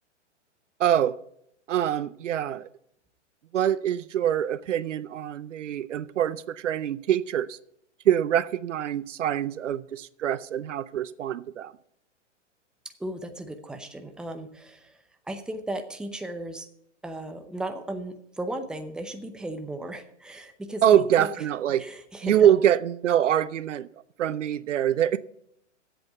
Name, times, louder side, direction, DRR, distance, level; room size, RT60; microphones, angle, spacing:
voice 1, 0.8-1.2 1.7-2.7 3.5-7.6 8.1-11.7 20.8-21.9 22.2-23.9 24.2-25.2, right 10 dB, 80° right, 0.6 m, -24 dB
voice 2, 13.0-15.0 15.3-16.7 17.0-21.3 21.8-22.5, right 1 dB, ahead, 0.7 m, -36 dB
8.0 x 7.7 x 8.0 m
hypercardioid pair, 120°, 36 cm